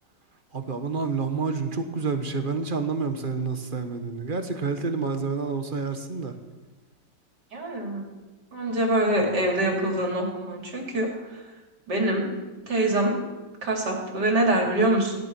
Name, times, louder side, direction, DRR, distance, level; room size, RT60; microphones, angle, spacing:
voice 1, 0.5-6.3, right 4 dB, 30° right, 7 dB, 1.2 m, -28 dB
voice 2, 7.5-8.0 8.5-11.1 11.9-12.3 12.7-13.2 13.6-15.1, right 1 dB, 65° right, 0 dB, 3.6 m, -24 dB
16.5 x 12.0 x 6.1 m, 1.2 s
omnidirectional pair, 2.0 m